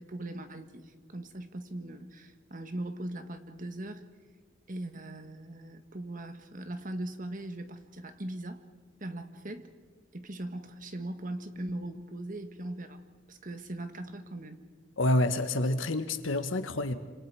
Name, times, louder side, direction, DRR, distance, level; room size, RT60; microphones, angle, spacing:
voice 1, 0.0-4.1 4.7-8.6 9.0-9.7 10.1-13.0 13.3-14.6, right 1 dB, 45° right, 8 dB, 1.6 m, -40 dB
voice 2, 15.0-16.9, left 1 dB, 90° left, 9 dB, 1.5 m, -28 dB
27.0 x 26.5 x 4.9 m, 1.4 s
head